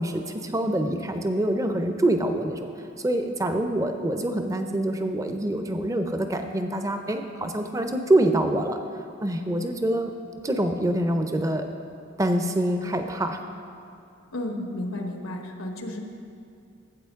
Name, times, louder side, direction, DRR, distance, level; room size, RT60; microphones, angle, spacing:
voice 1, 0.0-2.7 3.0-8.8 9.2-10.1 10.4-11.6 12.2-13.4, right 1 dB, 15° right, 6 dB, 0.4 m, -25 dB
voice 2, 14.3-16.0, left 1 dB, 90° left, 4 dB, 1.0 m, -32 dB
12.5 x 8.1 x 3.5 m, 2.6 s
head